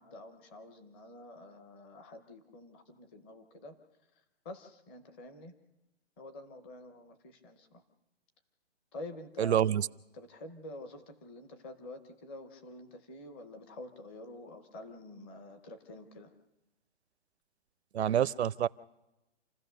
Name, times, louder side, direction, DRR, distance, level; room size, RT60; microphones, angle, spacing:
voice 1, 0.0-3.8 4.4-5.5 6.2-7.8 8.9-9.7 10.1-16.3, left 2 dB, 10° left, 9 dB, 0.6 m, -48 dB
voice 2, 9.4-9.9 17.9-18.7, right 10 dB, 70° right, 18 dB, 0.7 m, -27 dB
28.5 x 15.5 x 6.7 m, 1.0 s
hypercardioid pair, 170°, 34 cm